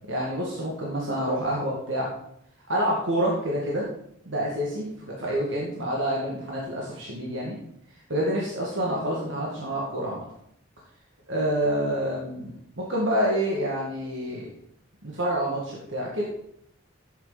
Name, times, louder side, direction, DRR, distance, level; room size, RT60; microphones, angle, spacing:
voice 1, 0.1-2.1 2.7-3.9 4.3-7.6 8.1-10.2 11.3-14.5 15.0-16.2, equal, 80° right, -4 dB, 2.1 m, -27 dB
12.0 x 8.6 x 4.1 m, 0.72 s
head